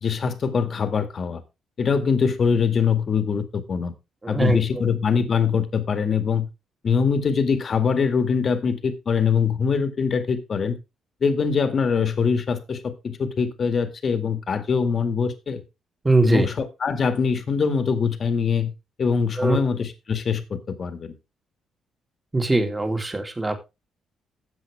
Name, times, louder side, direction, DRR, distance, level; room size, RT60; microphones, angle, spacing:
voice 1, 0.0-1.4 1.8-3.9 4.3-6.5 6.8-10.8 11.2-15.6 16.2-18.7 19.0-21.1, left 6 dB, 45° left, 10 dB, 2.0 m, -23 dB
voice 2, 4.2-4.8 16.0-16.5 19.4-19.6 22.3-23.7, right 2 dB, 15° right, 6 dB, 2.7 m, -22 dB
13.5 x 7.7 x 3.5 m, 0.25 s
cardioid pair, 90°, 0 cm